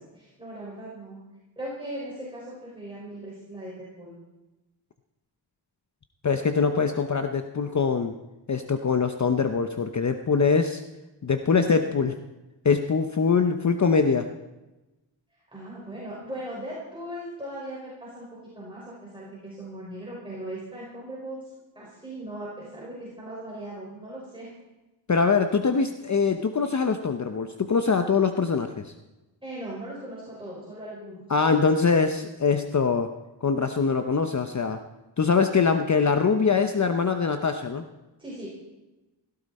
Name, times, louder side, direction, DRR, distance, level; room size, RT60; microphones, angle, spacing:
voice 1, 0.1-1.2 1.6-4.2 15.5-18.3 18.5-21.4 21.8-24.5 29.4-31.3 38.2-38.5, right 1 dB, 10° right, -7 dB, 5.3 m, -38 dB
voice 2, 6.2-8.1 8.5-10.8 11.2-12.2 12.6-14.3 25.1-28.9 31.3-33.1 33.4-34.8 35.2-37.8, left 5 dB, 40° left, 7 dB, 0.8 m, -23 dB
17.5 x 16.0 x 4.3 m, 1.0 s
wide cardioid pair, 135°, 46 cm